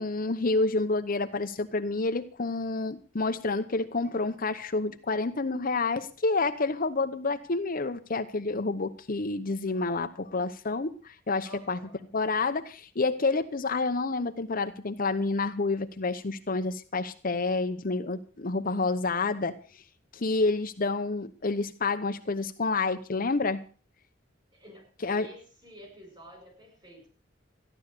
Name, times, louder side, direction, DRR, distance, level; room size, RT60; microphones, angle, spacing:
voice 1, 0.0-11.8 12.1-19.6 20.1-23.6 25.0-25.3, left 3 dB, 50° left, 8 dB, 0.9 m, -29 dB
voice 2, 11.4-12.1 24.5-27.1, equal, 25° right, 3 dB, 7.6 m, -50 dB
14.5 x 11.0 x 6.7 m, 0.39 s
head